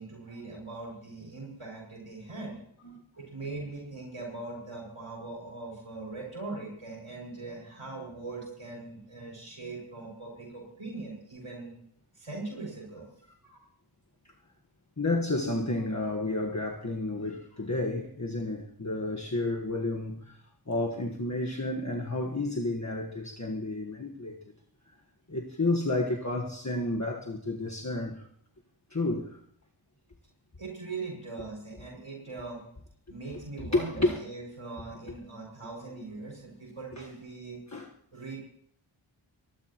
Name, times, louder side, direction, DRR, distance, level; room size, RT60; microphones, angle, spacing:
voice 1, 0.0-2.6 3.2-11.7 12.1-13.1 30.6-32.6 33.1-37.6 38.1-38.4, right 3 dB, 80° right, 6.5 m, -41 dB
voice 2, 15.0-20.4 20.7-24.4 25.3-28.3 28.9-29.4 33.7-34.2 37.0-37.1 37.7-37.9, left 2 dB, 35° left, 1.4 m, -31 dB
23.0 x 20.5 x 3.0 m
wide cardioid pair, 40°, 50 cm